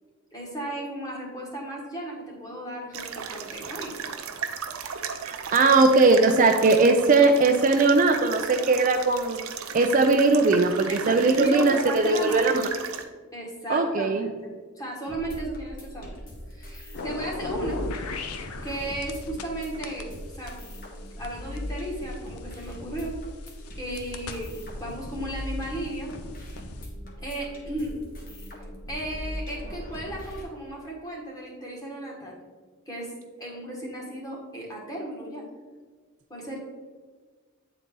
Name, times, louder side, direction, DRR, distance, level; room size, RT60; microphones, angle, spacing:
voice 1, 0.3-4.1 10.9-12.6 13.3-16.2 16.5-17.8 18.6-20.1 20.3-20.6 21.2-23.1 23.7-26.1 27.2-28.0 28.9-32.4 32.9-33.1 33.4-35.4 36.3-36.6, right 1 dB, 15° left, -2 dB, 1.5 m, -35 dB
sound 1, 2.9-13.0, right 7 dB, 75° right, 0.6 m, -36 dB
voice 2, 5.2-9.4 9.7-12.7 13.7-14.3, right 3 dB, 35° right, 5 dB, 0.4 m, -20 dB
sound 2, 15.1-30.4, equal, 40° left, 1.3 m, -39 dB
sound 3, 16.9-19.5 19.8-22.8 23.4-26.9, left 3 dB, 85° left, 0.6 m, -38 dB
8.7 x 4.0 x 3.7 m, 1.4 s
head